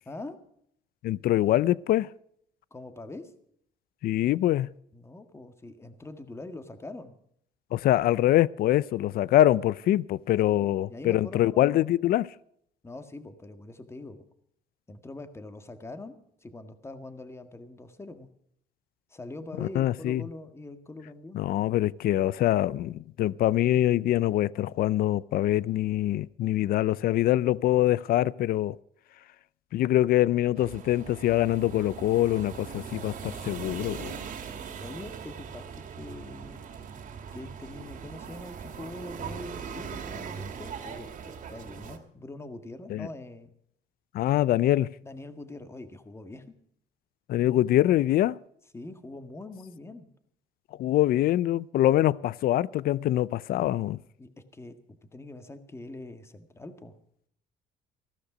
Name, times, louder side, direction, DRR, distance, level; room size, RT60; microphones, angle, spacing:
voice 1, 0.0-0.4 2.7-3.3 4.9-7.1 10.4-11.9 12.8-14.2 14.9-16.1 16.4-18.3 19.1-21.4 34.8-36.6 37.3-41.1 41.5-43.5 45.0-46.4 48.7-50.1 54.2-54.7 55.1-56.9, left 2 dB, 15° left, 1.7 m, -43 dB
voice 2, 1.0-2.1 4.0-4.7 7.7-12.3 19.6-20.2 21.3-28.8 29.7-34.2 42.9-43.1 44.1-44.9 47.3-48.4 50.8-54.0, left 13 dB, 60° left, 0.5 m, -24 dB
sound 1, 30.5-42.0, right 6 dB, 50° right, 2.3 m, -40 dB
15.5 x 13.0 x 5.0 m
cardioid pair, 110°, 17 cm